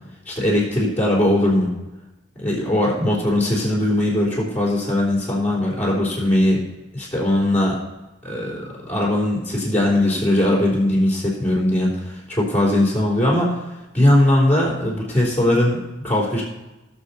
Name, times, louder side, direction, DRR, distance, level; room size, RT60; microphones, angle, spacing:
voice 1, 0.3-1.7 2.4-6.6 6.9-7.8 8.2-13.6 13.9-16.4, left 1 dB, 10° left, -4 dB, 3.3 m, -20 dB
19.0 x 6.6 x 4.1 m, 1.0 s
head